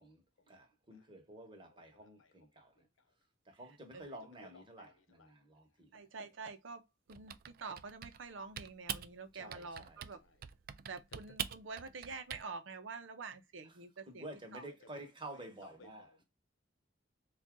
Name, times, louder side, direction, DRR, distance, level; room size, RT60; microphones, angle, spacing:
voice 1, 0.0-2.7 3.5-6.0 9.3-10.1 13.6-13.8 14.1-16.1, right 1 dB, 25° right, 1.1 m, -51 dB
voice 2, 1.3-2.3 3.9-5.3 10.2-10.4 11.1-11.2 14.6-16.2, left 3 dB, 85° left, 0.8 m, -61 dB
voice 3, 5.9-6.8 7.1-7.3 7.6-10.2 10.9-14.2 14.5-14.6, right 4 dB, 75° right, 0.7 m, -47 dB
Typing, 7.1-8.3 8.6-9.1 9.5-10.2 10.4-12.4, right 9 dB, 50° right, 0.4 m, -43 dB
3.9 x 2.4 x 3.6 m
head